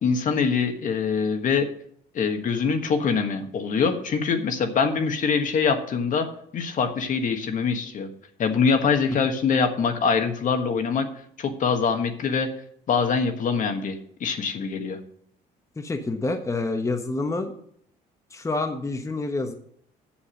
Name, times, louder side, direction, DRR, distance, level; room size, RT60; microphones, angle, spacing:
voice 1, 0.0-1.7 2.1-6.3 6.5-8.1 8.4-11.1 11.4-12.5 12.9-15.0, left 5 dB, 50° left, 6 dB, 1.4 m, -24 dB
voice 2, 15.8-17.5 18.3-19.6, left 3 dB, 20° left, 5 dB, 1.1 m, -27 dB
7.2 x 7.1 x 6.5 m, 0.65 s
cardioid pair, 110°, 17 cm